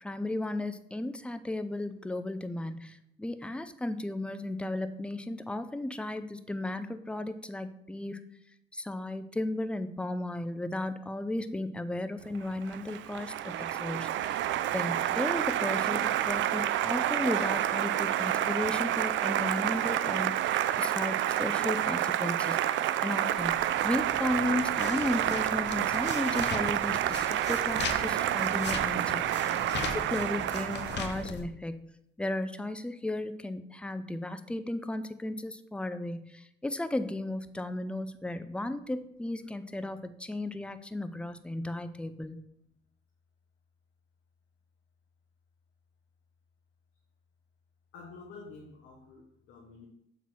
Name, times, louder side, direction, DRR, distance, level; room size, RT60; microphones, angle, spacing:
voice 1, 0.0-8.2 8.7-14.5 14.7-31.9 32.2-42.4, left 1 dB, 5° left, 11 dB, 0.5 m, -35 dB
Applause, 12.4-31.2, right 12 dB, 70° right, 0.4 m, -29 dB
sound 1, 23.4-31.4, left 5 dB, 60° left, 1.0 m, -40 dB
voice 2, 47.9-49.9, left 4 dB, 85° left, -1 dB, 1.2 m, -49 dB
7.3 x 4.0 x 5.9 m, 0.76 s
cardioid pair, 90°, 20 cm